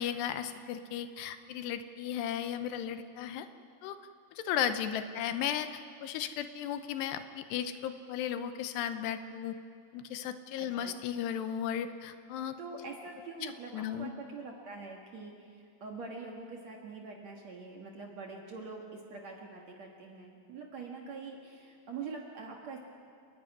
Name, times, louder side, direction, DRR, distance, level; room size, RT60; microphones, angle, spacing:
voice 1, 0.0-3.5 3.8-4.0 4.4-9.6 9.9-12.6 13.4-14.1, left 9 dB, 85° left, 10 dB, 2.9 m, -35 dB
voice 2, 10.6-11.0 12.6-22.8, right 4 dB, 55° right, 0 dB, 2.1 m, -44 dB
30.0 x 11.0 x 9.7 m, 2.3 s
omnidirectional pair, 5.0 m